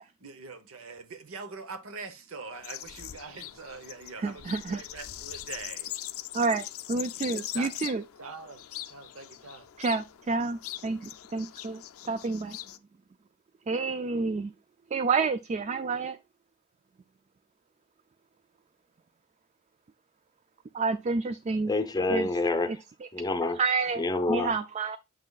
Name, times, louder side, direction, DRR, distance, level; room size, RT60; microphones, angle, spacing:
voice 1, 0.2-5.9 7.5-7.7 8.2-9.7, right 4 dB, 70° right, 0.9 m, -43 dB
sound 1, 2.5-12.8, left 13 dB, 80° left, 0.5 m, -42 dB
voice 2, 4.2-4.8 6.3-8.0 9.8-12.6 13.7-14.5 14.9-16.2 20.7-21.7 22.1-22.3 22.7-23.1 23.5-24.0 24.3-25.0, right 4 dB, 30° right, 0.3 m, -29 dB
voice 3, 21.7-22.8 23.1-23.6 24.0-24.5, left 2 dB, 20° left, 0.7 m, -27 dB
6.6 x 6.0 x 2.4 m
head